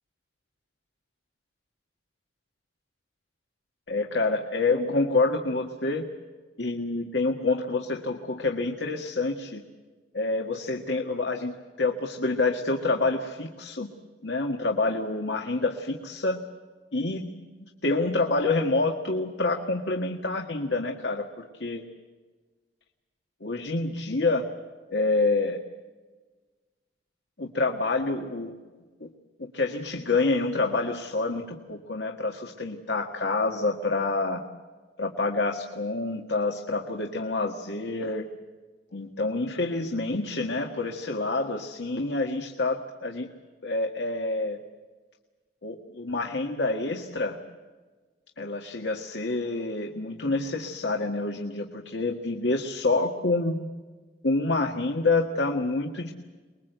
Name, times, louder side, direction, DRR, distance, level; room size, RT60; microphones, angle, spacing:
voice 1, 3.9-6.1 6.6-9.6 10.1-13.9 14.2-16.4 16.9-17.3 17.6-21.8 23.4-24.4 24.9-25.6 27.4-28.6 29.0-29.1 29.4-34.4 35.0-38.3 38.9-43.3 43.6-44.6 45.6-47.4 48.4-53.7 54.2-56.1, left 3 dB, 90° left, 2 dB, 1.7 m, -27 dB
24.5 x 21.5 x 8.0 m, 1.4 s
head